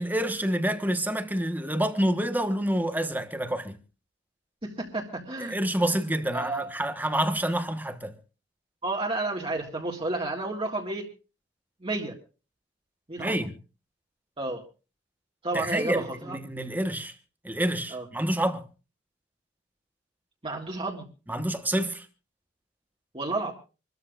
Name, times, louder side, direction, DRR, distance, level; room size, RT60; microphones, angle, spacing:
voice 1, 0.0-3.8 5.4-8.1 13.2-13.6 15.5-17.1 17.4-18.6 21.3-22.1, right 1 dB, 10° right, 1.2 m, -28 dB
voice 2, 4.6-5.6 6.3-6.7 8.8-11.1 11.8-12.2 13.1-13.4 14.4-14.6 15.4-16.4 17.9-18.0 20.4-21.1 23.1-23.5, right 2 dB, 30° right, 1.9 m, -31 dB
27.0 x 13.5 x 2.5 m
head